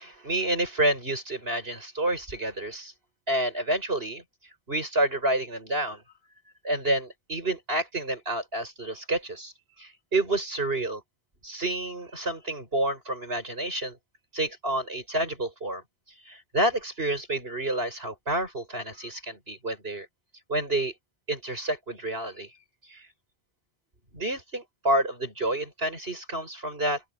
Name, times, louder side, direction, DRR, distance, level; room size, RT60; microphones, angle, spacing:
voice 1, 0.0-2.9 3.3-4.2 4.7-6.0 6.6-9.5 9.8-11.0 11.4-14.0 14.3-15.8 16.3-20.1 20.5-20.9 21.3-22.5 22.9-23.1 24.1-27.0, right 1 dB, 70° right, 7.2 m, -29 dB
open air
omnidirectional pair, 1.1 m